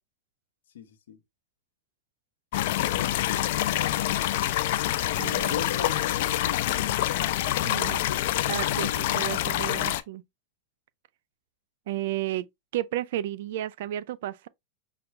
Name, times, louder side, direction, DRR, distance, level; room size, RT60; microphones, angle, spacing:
voice 1, 0.7-1.2 2.6-4.1 5.5-7.5, left 8 dB, 80° left, 0.8 m, -40 dB
sound 1, 2.5-10.0, left 13 dB, 65° left, 0.4 m, -26 dB
voice 2, 5.2-5.7 7.6-8.1 8.5-10.2 11.9-12.5 12.7-14.5, right 13 dB, 70° right, 0.4 m, -32 dB
5.8 x 2.3 x 3.0 m
hypercardioid pair, 115°, 0 cm